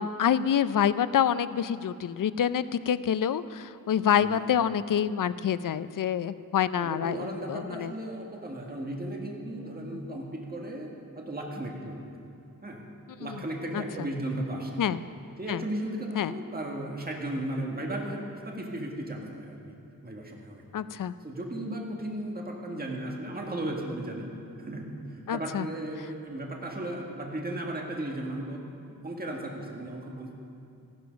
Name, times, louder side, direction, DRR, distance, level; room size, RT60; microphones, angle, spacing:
voice 1, 0.0-7.9 9.9-10.0 13.7-13.8 14.8-15.0 15.5-15.6 16.2-16.3 20.7-21.1 25.3-25.7, left 9 dB, 60° left, 15 dB, 0.5 m, -27 dB
voice 2, 6.7-10.9 11.1-12.0 12.6-12.8 13.2-14.8 15.4-19.7 20.0-20.6 21.2-24.3 24.6-28.6 29.0-30.4, right 1 dB, 25° right, 0 dB, 1.7 m, -35 dB
14.5 x 11.5 x 5.2 m, 2.6 s
wide cardioid pair, 105°, 36 cm